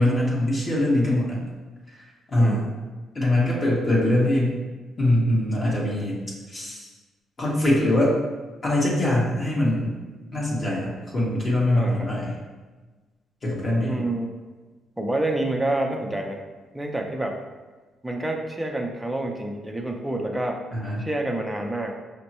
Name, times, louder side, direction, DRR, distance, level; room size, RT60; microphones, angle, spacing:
voice 1, 0.0-1.4 1.9-2.0 2.3-2.7 3.1-4.6 5.0-6.2 6.5-6.9 7.4-8.1 8.6-9.9 10.3-12.4 13.4-14.0 20.7-21.1, left 1 dB, 40° left, -5 dB, 1.2 m, -22 dB
voice 2, 2.4-2.7 11.8-12.1 13.8-14.3 15.0-16.4 16.7-17.4 18.0-20.6 21.0-21.9, right 1 dB, 5° right, 2 dB, 0.5 m, -28 dB
5.2 x 2.1 x 2.9 m, 1.3 s
cardioid pair, 90°, 0 cm